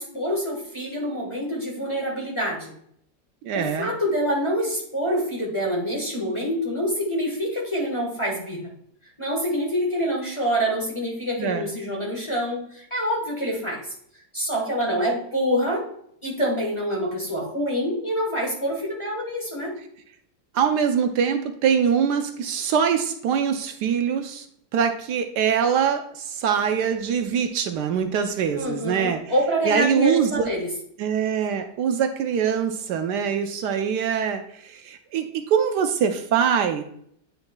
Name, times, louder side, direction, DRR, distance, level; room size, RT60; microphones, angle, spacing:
voice 1, 0.0-2.7 3.5-8.7 9.2-13.8 14.3-15.9 16.2-19.8 28.5-30.7, equal, 20° left, -3 dB, 1.2 m, -26 dB
voice 2, 3.4-3.9 11.4-11.7 20.5-24.4 24.7-29.2 29.7-30.5 31.0-36.8, right 7 dB, 75° right, 7 dB, 1.1 m, -23 dB
8.9 x 5.5 x 2.2 m, 0.68 s
omnidirectional pair, 1.9 m